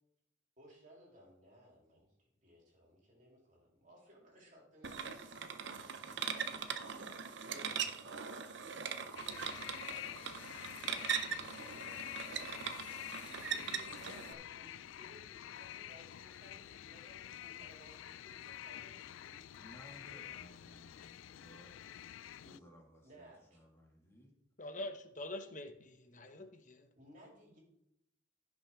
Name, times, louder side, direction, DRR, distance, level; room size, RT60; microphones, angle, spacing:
voice 1, 0.6-6.4 7.4-9.4 10.3-12.2 13.5-19.6 22.4-22.6 23.0-23.6 26.9-27.6, equal, 40° right, -3 dB, 3.4 m, -61 dB
sound 1, 4.8-14.3, right 7 dB, 65° right, 0.7 m, -41 dB
sound 2, 9.2-22.6, left 12 dB, 80° left, 0.3 m, -48 dB
voice 2, 19.6-22.0 22.4-24.3, equal, 15° left, -1 dB, 2.3 m, -59 dB
voice 3, 24.6-26.9, left 1 dB, 40° left, 7 dB, 0.9 m, -45 dB
15.0 x 6.0 x 3.7 m, 0.81 s
head